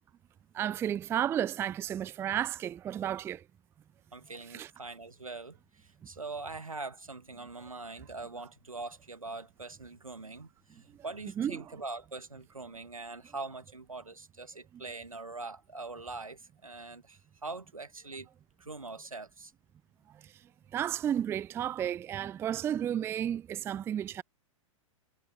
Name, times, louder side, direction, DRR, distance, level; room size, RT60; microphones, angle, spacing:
voice 1, 0.5-3.4 4.5-4.7 11.4-11.6 20.7-24.2, right 10 dB, 15° right, 0.4 m, -32 dB
voice 2, 4.1-18.3 18.6-19.5, right 3 dB, 85° right, 2.3 m, -43 dB
figure-of-eight pair, 100°, 17 cm